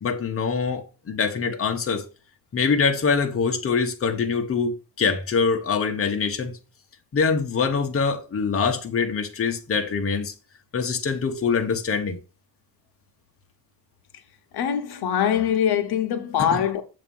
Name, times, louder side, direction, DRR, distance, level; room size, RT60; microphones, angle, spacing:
voice 1, 0.0-2.1 2.5-4.7 5.0-6.5 7.1-10.3 10.7-12.2 16.4-16.6, left 5 dB, 35° left, 1.0 m, -24 dB
voice 2, 14.5-16.8, left 9 dB, 85° left, 1.0 m, -23 dB
7.3 x 2.9 x 5.3 m
cardioid pair, 130°, 38 cm